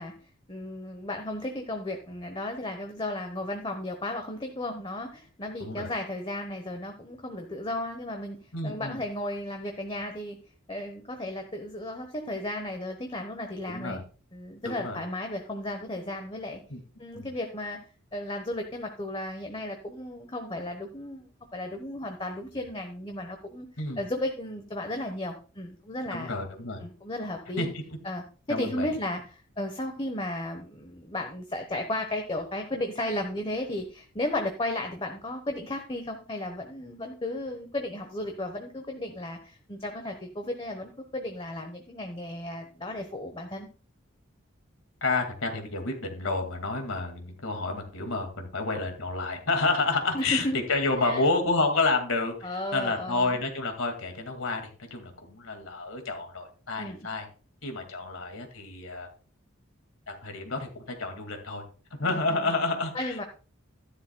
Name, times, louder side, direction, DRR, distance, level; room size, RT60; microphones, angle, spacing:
voice 1, 0.0-8.4 8.6-10.4 10.7-14.0 14.3-16.6 17.0-17.8 18.1-23.7 24.0-26.3 26.8-27.7 28.0-43.7 50.1-50.6 51.0-51.2 52.4-53.4 56.8-57.0 62.0-62.5 62.9-63.2, left 1 dB, 25° left, 4 dB, 1.1 m, -34 dB
voice 2, 8.5-9.0 13.7-14.0 14.6-15.0 16.7-16.8 17.1-17.3 23.8-24.0 26.1-26.9 27.6-27.7 28.5-28.9 45.0-57.2 57.6-59.1 60.1-61.6 61.9-63.2, left 3 dB, 75° left, 4 dB, 2.2 m, -29 dB
13.5 x 11.0 x 2.3 m, 0.37 s
head